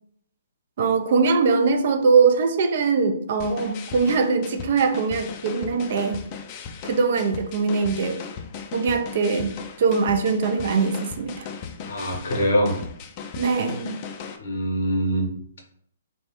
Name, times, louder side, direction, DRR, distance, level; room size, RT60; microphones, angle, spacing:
voice 1, 0.8-6.2 6.9-8.2 8.7-11.5 13.4-14.0, right 4 dB, 50° right, 6 dB, 0.4 m, -22 dB
sound 1, 3.4-14.4, left 6 dB, 35° left, 0.3 m, -37 dB
voice 2, 11.8-12.8 14.4-15.3, equal, 65° left, 1 dB, 0.7 m, -23 dB
2.3 x 2.0 x 2.9 m, 0.65 s
figure-of-eight pair, 125°, 0 cm